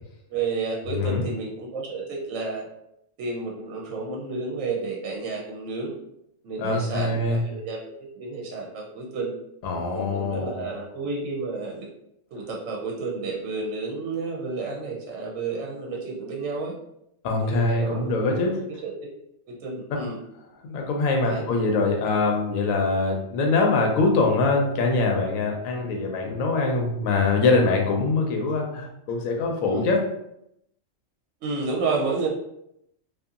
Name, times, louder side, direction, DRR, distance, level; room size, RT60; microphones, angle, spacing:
voice 1, 0.3-2.7 3.2-5.9 6.4-7.9 8.2-9.3 9.9-11.9 12.3-16.7 17.4-18.9 19.5-20.2 21.2-21.4 29.7-29.8 31.4-32.3, right 4 dB, 70° right, -2 dB, 0.9 m, -31 dB
voice 2, 6.6-7.4 9.6-10.7 17.2-18.6 20.6-30.0, left 3 dB, 80° left, 1 dB, 1.0 m, -23 dB
2.7 x 2.5 x 2.4 m, 0.79 s
omnidirectional pair, 1.4 m